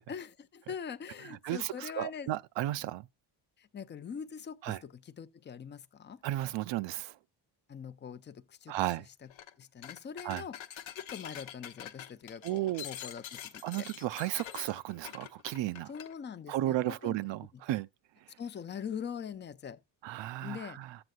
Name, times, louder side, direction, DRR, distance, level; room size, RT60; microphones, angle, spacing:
voice 1, 0.1-2.3 3.6-6.2 7.7-8.7 9.6-10.6 10.9-13.9 15.9-17.2 18.4-19.8 20.4-20.8, left 7 dB, 25° left, 0.4 m, -43 dB
voice 2, 1.4-3.1 4.6-4.8 6.2-7.1 8.7-9.1 10.2-10.4 12.4-12.8 13.6-15.9 16.5-17.9 20.0-21.0, right 15 dB, 70° right, 0.5 m, -34 dB
sound 1, 9.3-9.5 9.8-16.1, left 10 dB, 90° left, 1.0 m, -45 dB
14.0 x 7.8 x 2.4 m
cardioid pair, 145°, 46 cm